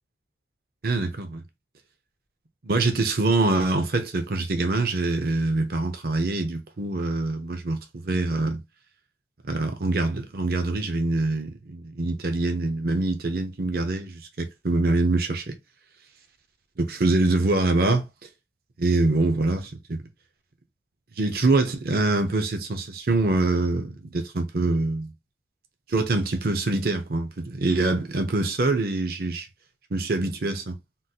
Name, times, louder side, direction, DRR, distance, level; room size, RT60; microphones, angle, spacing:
voice 1, 0.8-1.4 2.6-8.6 9.4-15.6 16.8-18.1 18.8-20.0 21.2-25.1 25.9-29.5 29.9-30.7, right 2 dB, 55° right, 0.6 m, -24 dB
3.7 x 2.3 x 2.7 m
head